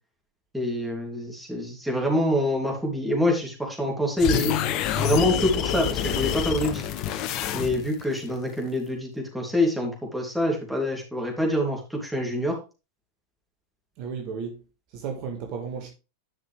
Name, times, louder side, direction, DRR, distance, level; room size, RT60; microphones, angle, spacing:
voice 1, 0.5-4.6 5.0-6.8 7.5-12.6, left 1 dB, 5° right, 2.9 m, -26 dB
sound 1, 4.2-8.0, left 10 dB, 40° left, 0.8 m, -27 dB
voice 2, 14.0-14.6 14.9-15.9, right 6 dB, 45° right, 1.7 m, -33 dB
10.5 x 6.0 x 3.4 m
figure-of-eight pair, 90°, 0 cm